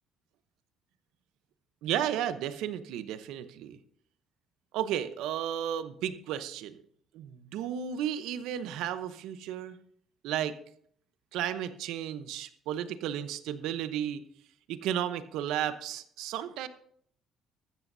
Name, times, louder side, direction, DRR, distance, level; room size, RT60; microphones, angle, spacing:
voice 1, 1.8-3.8 4.7-6.8 7.1-9.8 10.2-10.6 11.3-14.2 14.7-16.7, right 10 dB, 85° right, 12 dB, 0.8 m, -33 dB
14.0 x 13.5 x 2.7 m, 0.63 s
cardioid pair, 165°, 0 cm